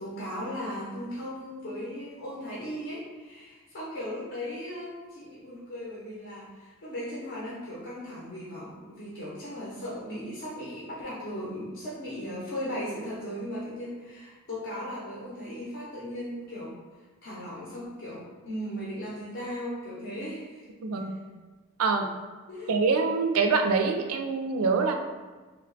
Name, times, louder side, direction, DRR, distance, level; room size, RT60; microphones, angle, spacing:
voice 1, 0.0-16.8 17.2-20.6 22.5-22.7, equal, 55° left, -7 dB, 0.7 m, -37 dB
voice 2, 20.8-21.2 21.8-22.1 22.7-24.9, right 4 dB, 85° right, 5 dB, 0.4 m, -25 dB
2.9 x 2.2 x 3.9 m, 1.3 s
head